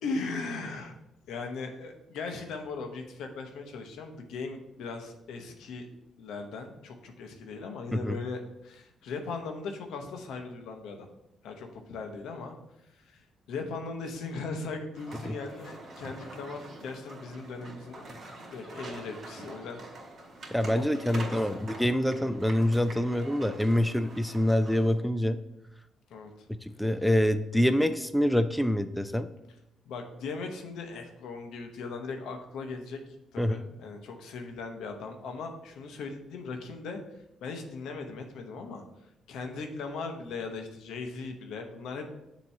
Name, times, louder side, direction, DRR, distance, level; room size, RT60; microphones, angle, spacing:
voice 1, 0.0-0.9 1.3-5.9 6.2-11.1 11.4-12.5 12.9-18.0 18.5-19.8 20.7-21.6 26.1-26.5 29.8-33.0 33.3-37.0 37.4-38.8 39.3-42.1, left 4 dB, 80° left, 4 dB, 0.9 m, -38 dB
sound 1, 14.9-24.9, right 1 dB, 55° right, 2.3 m, -45 dB
voice 2, 20.5-25.4 26.8-29.3 33.4-33.6, left 1 dB, 5° left, 10 dB, 0.3 m, -26 dB
7.1 x 3.0 x 5.7 m, 0.87 s
cardioid pair, 90°, 0 cm